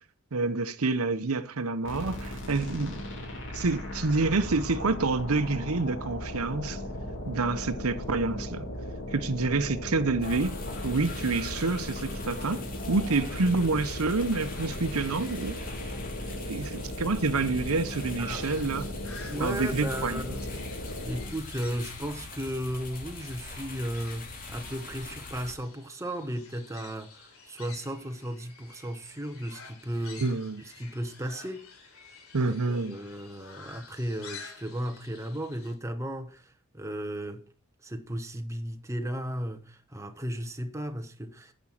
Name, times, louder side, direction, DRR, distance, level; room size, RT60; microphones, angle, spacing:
voice 1, 0.3-3.0 3.5-6.8 7.3-8.7 9.1-10.6 10.8-12.6 12.9-15.6 16.5-18.9 19.4-20.2 30.2-30.6 32.3-33.0, right 3 dB, 85° right, 0.8 m, -28 dB
sound 1, 1.8-21.5, left 1 dB, 65° left, 3.6 m, -37 dB
sound 2, 10.2-25.5, left 3 dB, 40° left, 2.7 m, -42 dB
voice 2, 18.2-18.6 19.3-20.4 21.0-30.3 30.6-31.7 32.4-37.4 37.8-41.5, equal, 15° right, 1.1 m, -35 dB
sound 3, 18.3-35.7, left 5 dB, 80° left, 3.6 m, -50 dB
10.0 x 6.1 x 7.4 m
head